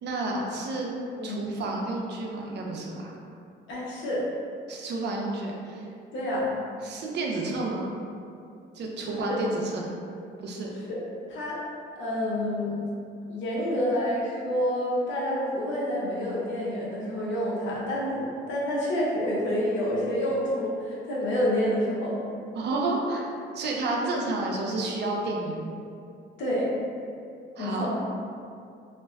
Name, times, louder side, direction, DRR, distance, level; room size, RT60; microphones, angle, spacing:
voice 1, 0.0-0.9 1.2-3.1 4.7-5.8 6.8-7.9 8.7-10.0 10.4-10.7 22.5-25.8 27.6-27.9, right 2 dB, 60° right, -1 dB, 0.5 m, -30 dB
voice 2, 3.7-4.3 6.1-6.5 9.1-9.4 10.7-11.0 11.3-11.7 12.0-12.7 13.3-22.2 26.4-26.7 27.6-27.9, equal, 75° left, -6 dB, 0.7 m, -28 dB
2.5 x 2.1 x 2.3 m, 2.5 s
cardioid pair, 90°, 20 cm